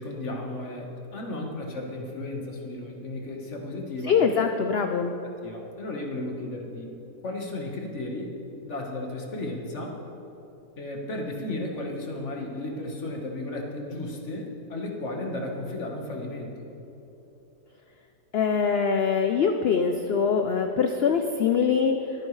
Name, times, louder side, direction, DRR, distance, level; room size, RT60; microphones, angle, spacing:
voice 1, 0.0-4.2 5.4-6.9 7.2-8.3 8.6-10.0 10.8-16.7, left 2 dB, 50° left, 1 dB, 1.7 m, -34 dB
voice 2, 4.1-5.2 18.3-22.0, left 6 dB, 70° left, 6 dB, 0.5 m, -23 dB
22.0 x 9.7 x 3.2 m, 2.9 s
omnidirectional pair, 1.7 m